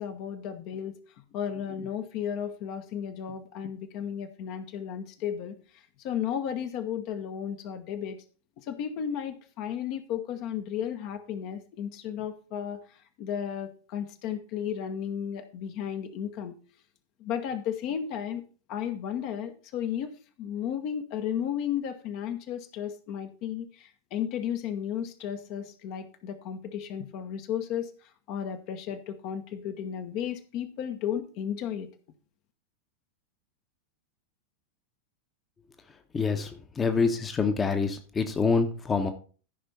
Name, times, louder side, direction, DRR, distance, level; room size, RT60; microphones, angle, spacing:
voice 1, 0.0-8.2 8.6-16.6 17.2-18.4 18.7-20.1 20.4-31.9, left 9 dB, 45° left, 7 dB, 1.1 m, -34 dB
voice 2, 36.1-39.1, left 4 dB, 20° left, 7 dB, 1.1 m, -26 dB
13.5 x 5.5 x 4.1 m, 0.39 s
figure-of-eight pair, 90°, 0 cm